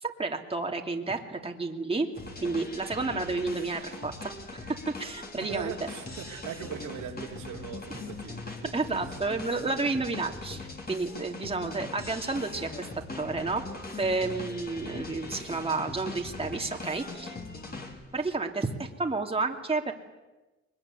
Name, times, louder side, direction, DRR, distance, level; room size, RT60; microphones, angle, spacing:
voice 1, 0.0-2.1 2.4-5.9 7.9-8.0 8.7-12.9 13.1-13.6 13.9-17.4 18.1-19.9, right 3 dB, 20° right, 2 dB, 2.7 m, -31 dB
sound 1, 2.1-18.3, left 3 dB, 30° left, 5.0 m, -41 dB
voice 2, 5.4-8.7 9.1-9.2, right 8 dB, 85° right, 1 dB, 3.5 m, -40 dB
22.5 x 21.5 x 9.7 m, 1.1 s
cardioid pair, 90°, 30 cm